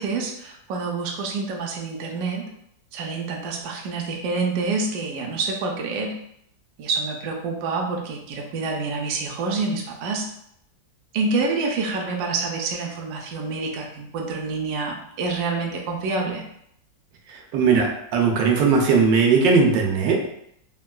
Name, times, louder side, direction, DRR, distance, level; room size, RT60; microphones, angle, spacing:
voice 1, 0.0-2.5 2.9-6.2 6.8-10.3 11.1-16.4, right 3 dB, 70° right, 0 dB, 1.0 m, -27 dB
voice 2, 17.5-20.3, right 5 dB, 90° right, 1 dB, 1.3 m, -18 dB
3.5 x 2.3 x 2.2 m, 0.73 s
omnidirectional pair, 1.9 m